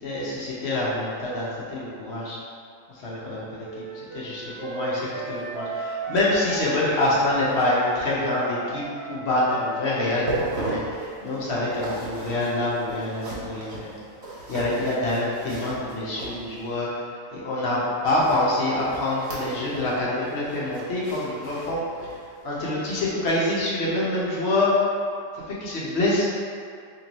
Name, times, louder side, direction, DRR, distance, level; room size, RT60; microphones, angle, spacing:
voice 1, 0.0-2.4 2.9-3.7 4.1-13.9 14.5-17.1 17.3-22.2 22.4-24.7 25.5-26.2, left 1 dB, 60° left, -6 dB, 0.6 m, -26 dB
Wind instrument woodwind instrument, 3.6-7.2 7.5-11.3, right 2 dB, 25° right, 0.4 m, -36 dB
sound 1, 10.1-16.8 18.2-20.0 20.3-22.3 22.7-22.8 23.4-23.5, right 1 dB, 70° right, 1.4 m, -36 dB
3.1 x 2.9 x 3.9 m, 2.3 s
omnidirectional pair, 1.9 m